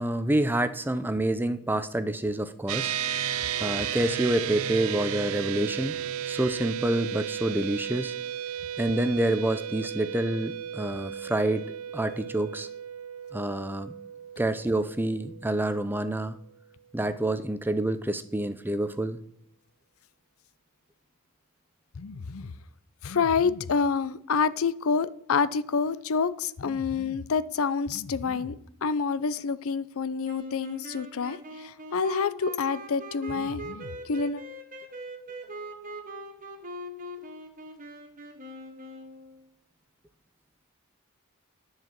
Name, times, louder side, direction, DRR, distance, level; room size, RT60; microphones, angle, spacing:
voice 1, 0.0-2.9 3.6-6.0 6.3-8.1 8.8-11.7 11.9-12.7 13.3-13.9 14.4-16.3 16.9-19.2, right 1 dB, 10° right, 0.5 m, -27 dB
sound 1, 2.7-16.3, right 9 dB, 65° right, 0.4 m, -34 dB
voice 2, 22.0-22.5 23.0-34.4, left 5 dB, 65° left, 0.5 m, -28 dB
sound 2, 30.2-39.4, equal, 40° right, 1.6 m, -41 dB
10.5 x 4.8 x 7.4 m
head